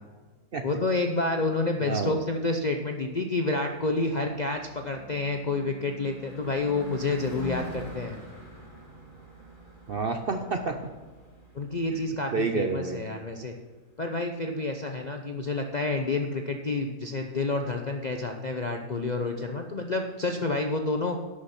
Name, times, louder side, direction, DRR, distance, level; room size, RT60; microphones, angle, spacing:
voice 1, 0.6-8.2 11.5-13.5 14.0-21.2, left 3 dB, 50° left, 4 dB, 0.5 m, -29 dB
voice 2, 1.8-2.2 9.9-10.8 11.9-12.0 12.3-13.1, right 4 dB, 55° right, 6 dB, 0.6 m, -29 dB
Car passing by / Truck / Engine, 4.1-13.5, equal, 15° left, 2.3 m, -45 dB
11.0 x 6.5 x 5.8 m, 1.3 s
omnidirectional pair, 1.6 m